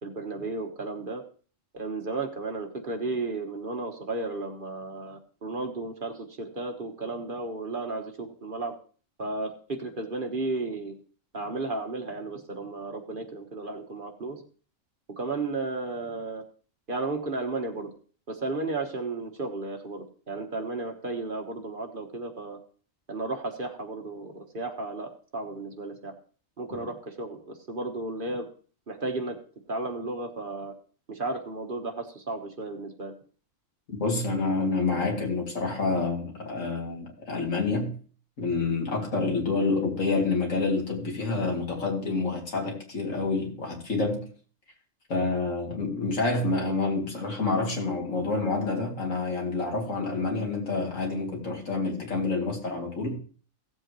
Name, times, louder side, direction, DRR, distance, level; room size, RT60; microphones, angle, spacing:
voice 1, 0.0-1.2 1.7-8.7 9.2-11.0 11.3-14.4 15.2-16.4 16.9-17.9 18.3-22.6 23.1-26.1 26.6-28.5 28.9-29.4 29.7-30.7 31.1-33.1, right 3 dB, 40° right, 1.3 m, -33 dB
voice 2, 33.9-37.9 38.4-44.3 45.1-53.2, left 3 dB, 75° left, 2.9 m, -28 dB
16.0 x 7.9 x 3.1 m
omnidirectional pair, 1.4 m